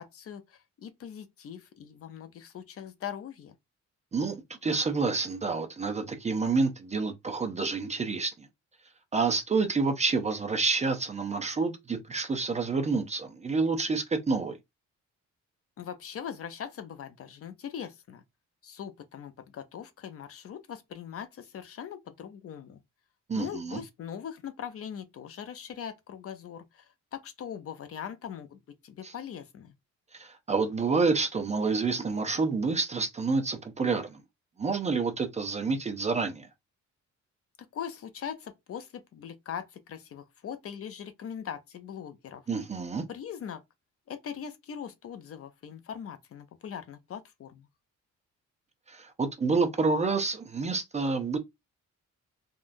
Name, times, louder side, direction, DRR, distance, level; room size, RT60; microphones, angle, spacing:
voice 1, 0.0-3.5 15.8-18.2 18.6-22.8 23.3-29.7 37.7-42.4 43.1-43.6 44.1-47.7, left 8 dB, 50° left, 0.5 m, -41 dB
voice 2, 4.1-8.3 9.1-14.5 23.3-23.8 29.0-29.1 30.1-34.2 34.6-36.5 42.5-43.0 48.9-51.4, right 4 dB, 25° right, 0.4 m, -28 dB
3.6 x 2.3 x 2.5 m
cardioid pair, 150°, 30 cm